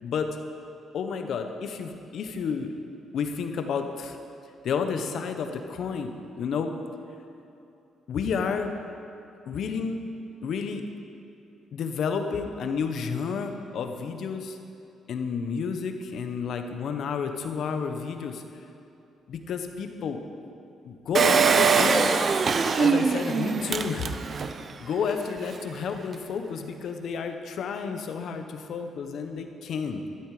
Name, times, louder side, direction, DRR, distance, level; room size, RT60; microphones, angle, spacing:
voice 1, 0.0-0.4 0.9-2.7 3.1-4.2 4.6-6.1 6.4-6.7 8.1-8.7 9.4-10.0 10.4-10.8 11.7-14.6 15.1-18.4 19.3-20.2 20.8-24.1 24.8-30.1, left 6 dB, 70° left, 6 dB, 1.1 m, -31 dB
Engine, 21.1-24.6 25.1-25.2 25.4-25.5, right 5 dB, 45° right, 0.6 m, -22 dB
13.0 x 12.0 x 5.0 m, 2.7 s
cardioid pair, 90°, 0 cm